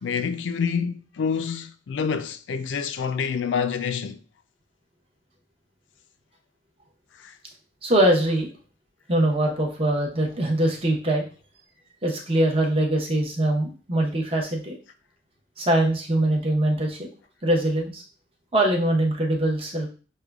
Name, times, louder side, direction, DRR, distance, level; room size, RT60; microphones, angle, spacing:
voice 1, 0.0-4.2 7.2-7.4, left 6 dB, 75° left, 0.4 m, -27 dB
voice 2, 7.8-8.5 9.1-11.2 12.0-14.8 15.6-17.1 17.4-18.0 18.5-19.9, right 1 dB, 30° right, 0.8 m, -22 dB
6.3 x 2.2 x 2.3 m
head